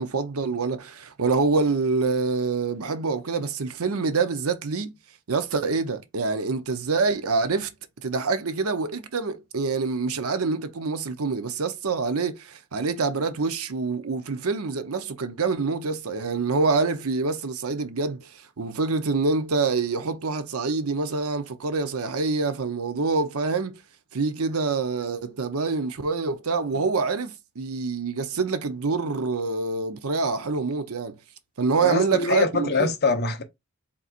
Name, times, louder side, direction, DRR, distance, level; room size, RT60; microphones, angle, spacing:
voice 1, 0.0-4.9 5.3-7.7 8.0-18.3 18.6-23.8 24.1-31.2 31.6-32.9, right 4 dB, 75° right, 0.7 m, -26 dB
voice 2, 31.8-33.4, left 4 dB, 45° left, 0.9 m, -24 dB
4.3 x 3.9 x 2.5 m
head